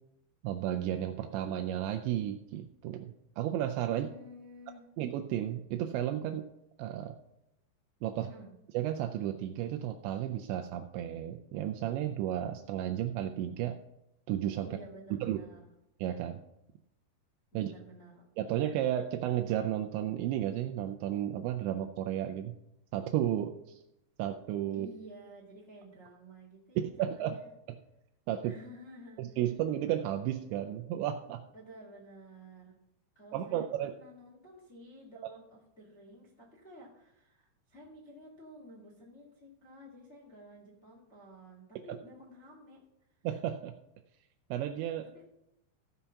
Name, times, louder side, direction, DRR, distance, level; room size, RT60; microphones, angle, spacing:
voice 1, 0.4-4.1 5.0-6.5 6.8-7.2 8.0-8.3 8.7-13.8 14.3-14.7 15.2-15.4 16.0-16.4 17.5-17.7 18.4-22.6 22.9-23.8 24.2-24.9 27.0-27.4 28.3-28.5 29.2-31.4 33.3-33.9 43.2-43.7 44.5-45.1, right 11 dB, 85° right, 6 dB, 2.6 m, -33 dB
voice 2, 3.9-4.9 8.2-8.5 14.6-15.7 17.5-18.3 24.7-27.5 28.4-29.4 31.5-32.8 33.1-42.8 45.1-45.2, right 1 dB, 35° left, -4 dB, 1.1 m, -52 dB
15.5 x 5.6 x 5.7 m, 0.87 s
omnidirectional pair, 5.6 m